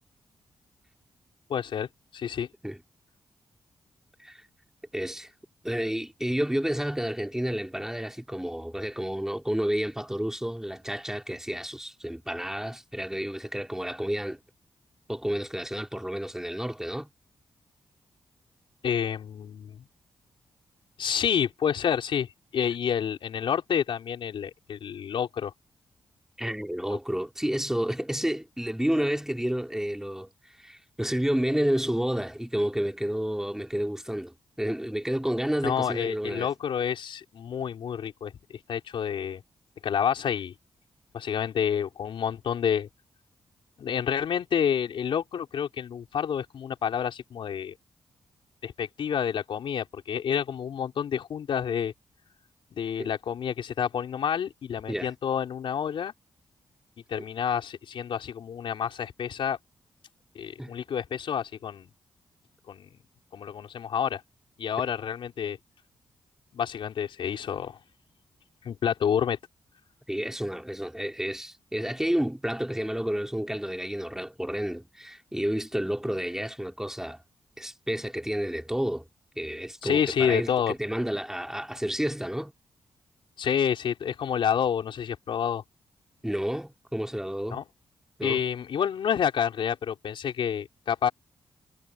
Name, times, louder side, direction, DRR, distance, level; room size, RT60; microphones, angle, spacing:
voice 1, 1.5-1.9 2.1-2.5 18.8-19.9 21.0-25.5 26.9-27.0 35.6-39.4 39.8-40.5 41.1-42.9 43.8-47.7 48.6-51.9 52.7-56.1 57.1-59.6 60.3-61.9 62.7-62.9 63.3-64.2 64.6-65.6 66.5-67.8 68.6-69.4 79.8-80.7 83.4-85.6 87.5-87.6 88.2-91.1, left 8 dB, 75° left, 4.5 m, -29 dB
voice 2, 4.9-5.3 5.6-14.4 15.1-17.1 26.4-30.3 30.6-36.5 53.0-53.1 54.9-55.1 57.2-57.3 60.6-60.7 70.1-77.2 77.6-79.0 79.4-82.5 86.2-87.6 88.2-88.4, equal, 5° right, 3.6 m, -30 dB
cardioid pair, 50°, 9 cm